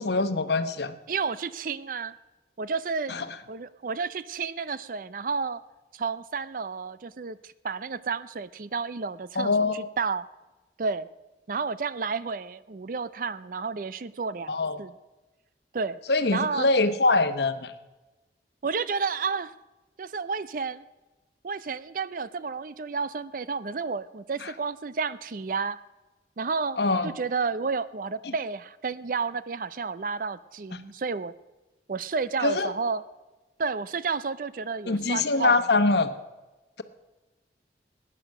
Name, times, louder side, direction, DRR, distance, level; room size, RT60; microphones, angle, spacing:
voice 1, 0.0-1.0 3.1-3.3 9.4-9.9 14.5-14.8 16.1-17.7 24.4-24.5 26.8-27.1 28.2-28.3 32.4-32.7 34.9-36.2, left 3 dB, 70° left, 10 dB, 1.0 m, -24 dB
voice 2, 1.1-2.1 2.6-3.1 3.5-5.6 5.9-10.3 10.8-11.1 11.5-14.5 14.8-14.9 15.7-16.0 16.3-16.7 18.6-19.5 20.0-20.8 21.4-25.8 26.4-26.8 27.0-31.3 31.9-33.0 33.6-35.6, right 5 dB, 50° right, 15 dB, 0.5 m, -31 dB
16.5 x 9.9 x 6.5 m, 1.1 s
head